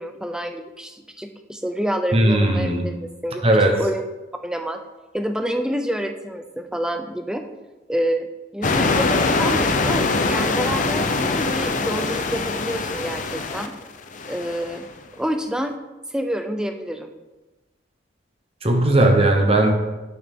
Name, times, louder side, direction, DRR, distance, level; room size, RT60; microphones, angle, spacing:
voice 1, 0.0-3.5 3.8-4.0 4.4-4.8 5.1-7.4 7.9-8.3 8.5-13.7 14.3-14.9 15.2-15.7 16.1-17.1, equal, 5° right, 6 dB, 0.5 m, -28 dB
voice 2, 2.1-2.9 3.4-3.8 18.6-19.7, right 1 dB, 30° right, 4 dB, 1.0 m, -17 dB
sound 1, 8.6-14.8, left 3 dB, 40° left, 0.6 m, -23 dB
8.9 x 6.4 x 3.7 m, 1.1 s
head